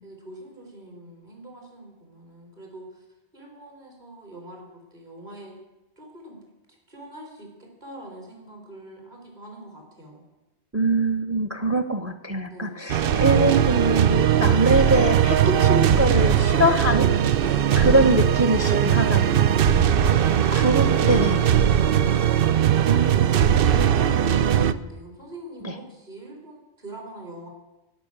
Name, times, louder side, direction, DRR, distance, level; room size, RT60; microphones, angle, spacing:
voice 1, 0.0-3.0 3.3-5.5 6.0-6.4 6.7-10.2 12.5-12.9 17.4-18.1 19.4-20.8 21.1-27.5, right 1 dB, 45° right, 0 dB, 3.8 m, -42 dB
voice 2, 10.7-17.1 17.8-19.5 20.5-21.4 22.9-23.4 25.6-25.7, right 1 dB, 15° right, 9 dB, 0.8 m, -23 dB
sound 1, 12.9-24.7, right 9 dB, 60° right, 0.7 m, -19 dB
17.5 x 6.0 x 8.7 m, 1.0 s
omnidirectional pair, 1.1 m